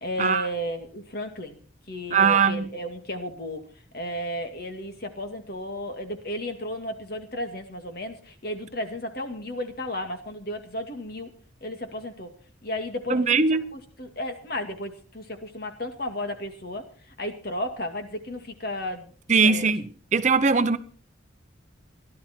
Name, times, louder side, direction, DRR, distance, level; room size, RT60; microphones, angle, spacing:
voice 1, 0.0-1.6 1.9-3.6 3.9-11.3 11.6-12.3 12.6-13.4 14.0-16.8 17.2-19.1 19.4-19.7, left 1 dB, 50° left, 2.3 m, -33 dB
voice 2, 2.1-2.7 13.1-13.6 19.3-19.9 20.1-20.8, right 5 dB, 40° right, 0.8 m, -20 dB
16.5 x 12.0 x 4.5 m
head